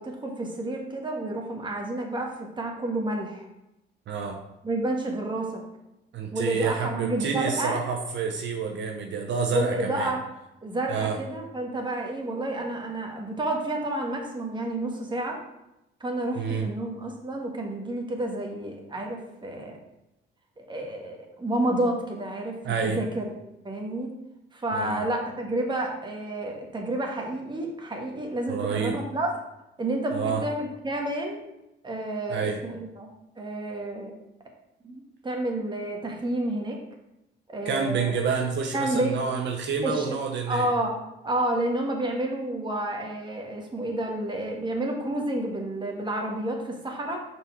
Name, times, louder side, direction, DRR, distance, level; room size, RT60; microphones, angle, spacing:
voice 1, 0.0-3.5 4.6-5.6 6.3-7.8 9.5-10.2 10.6-15.4 16.0-19.8 20.6-23.3 23.6-24.2 24.5-29.3 29.8-31.4 31.8-34.1 34.8-36.8 37.5-38.1 38.7-39.2 39.8-41.0 41.2-47.2, right 1 dB, 25° right, 1 dB, 1.5 m, -30 dB
voice 2, 4.1-4.4 6.1-10.1 10.9-11.2 16.4-16.7 22.6-23.0 24.7-25.0 28.5-29.0 30.1-30.4 32.3-32.6 37.6-40.7, right 6 dB, 65° right, 3 dB, 0.8 m, -28 dB
5.7 x 4.6 x 4.5 m, 0.89 s
cardioid pair, 90°, 20 cm